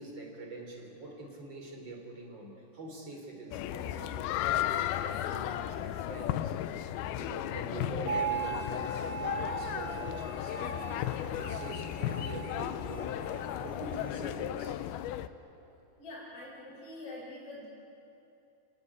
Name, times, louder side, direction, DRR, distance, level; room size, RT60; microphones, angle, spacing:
voice 1, 0.0-6.9 7.2-10.6 11.2-13.2 13.6-14.8, right 2 dB, 30° right, 2 dB, 3.6 m, -45 dB
sound 1, 3.5-15.3, left 12 dB, 80° left, 2.3 m, -35 dB
sound 2, 8.1-14.1, right 6 dB, 55° right, 4.6 m, -39 dB
voice 2, 16.0-17.7, left 2 dB, 35° left, -7 dB, 5.4 m, -45 dB
29.0 x 18.0 x 9.9 m, 2.9 s
omnidirectional pair, 5.1 m